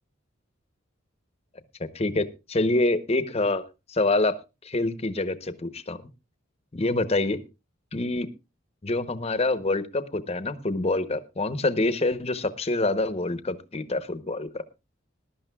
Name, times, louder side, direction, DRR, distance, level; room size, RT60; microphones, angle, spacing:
voice 1, 1.9-3.6 3.9-4.4 4.6-6.0 6.7-7.4 7.9-8.3 8.8-14.6, left 2 dB, 30° left, 13 dB, 0.8 m, -26 dB
21.0 x 11.5 x 2.3 m, 0.26 s
head